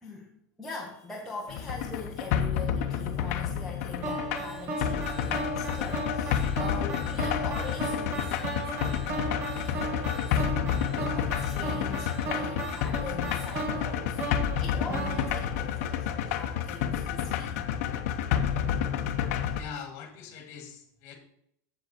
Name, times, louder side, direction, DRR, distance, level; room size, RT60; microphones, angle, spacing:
voice 1, 0.0-10.4 11.1-14.2 14.6-17.6, left 3 dB, ahead, -5 dB, 1.1 m, -43 dB
sound 1, 1.5-19.6, left 9 dB, 55° left, 0.8 m, -30 dB
sound 2, 4.0-16.2, right 2 dB, 30° right, 1.3 m, -35 dB
voice 2, 19.5-21.1, left 7 dB, 35° left, 4 dB, 2.0 m, -42 dB
7.9 x 7.7 x 4.3 m, 0.73 s
supercardioid pair, 175°, 9 cm